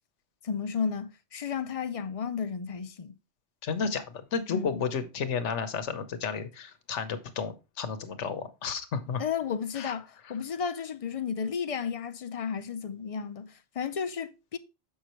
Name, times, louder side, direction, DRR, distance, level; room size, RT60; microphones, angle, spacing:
voice 1, 0.4-3.1 4.5-4.8 9.2-14.6, left 6 dB, 50° left, 0.4 m, -33 dB
voice 2, 3.6-9.2 9.7-9.9, left 6 dB, 85° left, 1.2 m, -32 dB
7.3 x 5.8 x 3.0 m
omnidirectional pair, 1.2 m